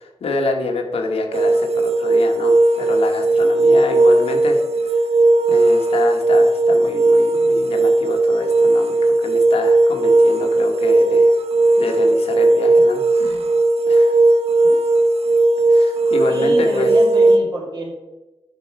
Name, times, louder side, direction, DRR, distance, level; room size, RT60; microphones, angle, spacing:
voice 1, 0.0-4.6 4.9-5.0 5.5-11.3 11.8-13.0 13.9-14.2 14.6-14.8 15.7-16.9, left 3 dB, 80° left, 3 dB, 1.3 m, -27 dB
sound 1, 1.3-17.4, right 2 dB, 85° right, 0.7 m, -16 dB
voice 2, 16.3-17.9, right 1 dB, 50° right, -2 dB, 2.4 m, -28 dB
9.1 x 5.2 x 4.8 m, 1.1 s
wide cardioid pair, 165°, 10 cm